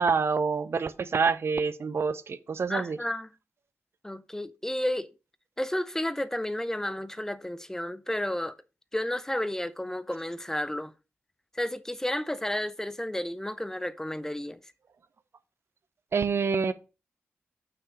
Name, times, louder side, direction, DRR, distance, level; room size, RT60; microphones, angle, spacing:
voice 1, 0.0-3.0 16.1-16.7, right 5 dB, 60° right, 0.6 m, -27 dB
voice 2, 2.7-3.3 4.0-5.1 5.6-8.6 8.9-10.9 11.5-14.6, left 1 dB, 10° left, 0.5 m, -32 dB
7.0 x 6.0 x 4.7 m
cardioid pair, 75°, 5 cm